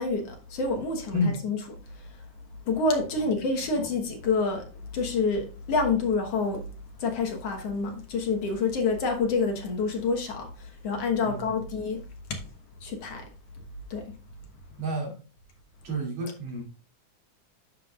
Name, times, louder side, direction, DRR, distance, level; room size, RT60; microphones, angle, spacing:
voice 1, 0.0-1.2 1.4-1.6 1.9-2.2 2.7-4.7 4.9-6.6 7.0-12.0 12.3-12.4 12.8-13.3 13.9-14.1, left 4 dB, 60° left, 2.0 m, -28 dB
voice 2, 11.2-11.5 14.8-15.2 15.8-16.6, equal, 65° right, 3.8 m, -30 dB
10.5 x 6.9 x 2.4 m
omnidirectional pair, 3.5 m